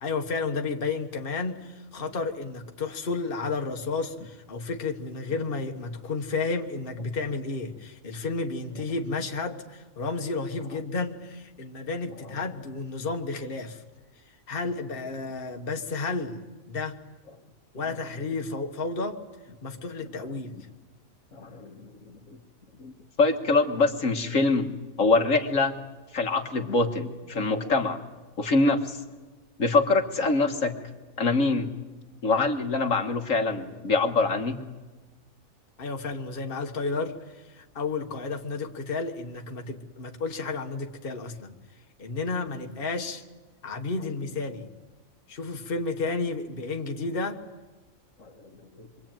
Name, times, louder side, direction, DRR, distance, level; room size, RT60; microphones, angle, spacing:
voice 1, 0.0-13.8 14.5-16.4 16.7-17.0 17.7-19.2 19.6-20.7 35.8-41.6 42.0-43.2 43.6-44.7 45.3-47.4, left 3 dB, 40° left, 3 dB, 1.6 m, -32 dB
voice 2, 21.3-22.4 22.8-22.9 23.2-25.8 26.1-28.0 28.4-29.0 29.6-30.7 31.2-31.7 32.2-34.6 48.2-48.3 48.8-48.9, left 3 dB, 70° left, 5 dB, 2.0 m, -24 dB
27.0 x 23.5 x 9.1 m, 1.2 s
omnidirectional pair, 1.4 m